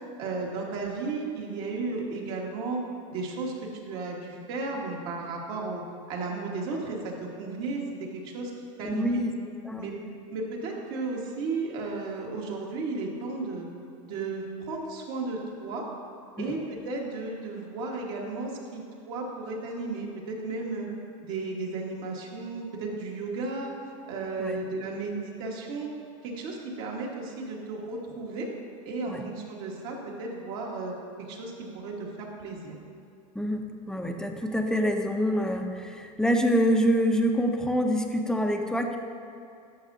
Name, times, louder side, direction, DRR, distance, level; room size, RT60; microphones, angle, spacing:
voice 1, 0.2-2.8 3.1-5.8 6.1-7.8 8.1-8.5 8.8-9.1 9.8-9.9 10.3-13.7 14.0-15.8 16.4-20.9 21.2-23.7 24.1-25.9 26.2-28.5 28.8-32.8, right 3 dB, 65° right, -2 dB, 1.6 m, -34 dB
voice 2, 8.8-9.3 9.6-9.9 16.4-16.5 24.4-24.6 29.1-29.2 33.3-39.0, equal, 5° left, 3 dB, 0.6 m, -26 dB
11.5 x 7.1 x 2.7 m, 2.5 s
supercardioid pair, 120°, 18 cm